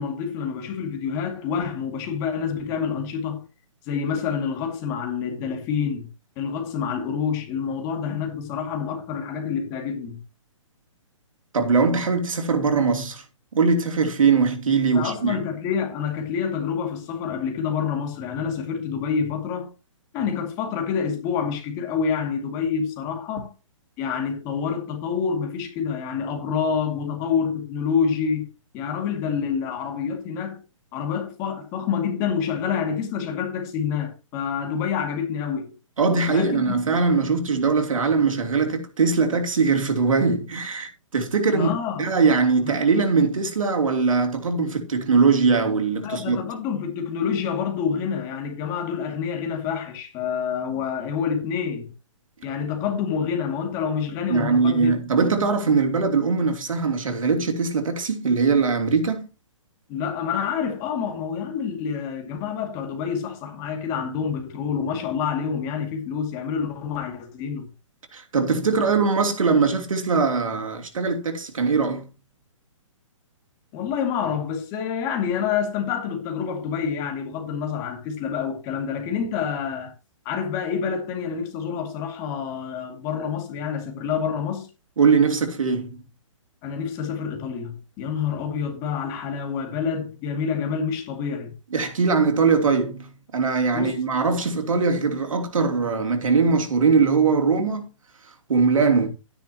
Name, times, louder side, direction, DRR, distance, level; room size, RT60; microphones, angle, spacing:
voice 1, 0.0-3.5 3.9-6.1 6.4-10.2 14.9-19.7 20.1-23.5 24.0-28.5 28.7-30.6 30.9-35.7 36.3-36.8 41.5-42.1 42.6-42.7 46.0-51.9 52.4-54.9 59.9-67.7 73.7-79.9 80.2-84.7 86.6-91.5 93.7-94.0, left 7 dB, 20° left, 2.2 m, -27 dB
voice 2, 11.5-13.2 13.5-15.4 36.0-41.7 42.0-46.4 54.3-59.3 68.1-72.1 85.0-86.0 91.7-97.9 98.5-99.1, right 4 dB, 85° right, 2.9 m, -21 dB
12.0 x 10.0 x 2.9 m
hypercardioid pair, 165°, 17 cm